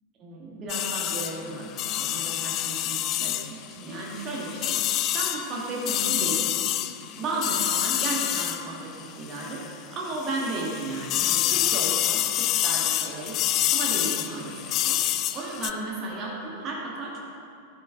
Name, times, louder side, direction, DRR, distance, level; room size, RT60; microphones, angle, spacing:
voice 1, 0.2-4.8 5.1-6.5 7.2-9.7 9.9-13.4 13.7-15.0 15.3-17.2, right 2 dB, 30° right, -4 dB, 2.0 m, -34 dB
sound 1, 0.7-9.7 10.1-15.7, left 13 dB, 35° left, 0.4 m, -27 dB
12.0 x 8.3 x 3.9 m, 2.4 s
figure-of-eight pair, 90°, 0 cm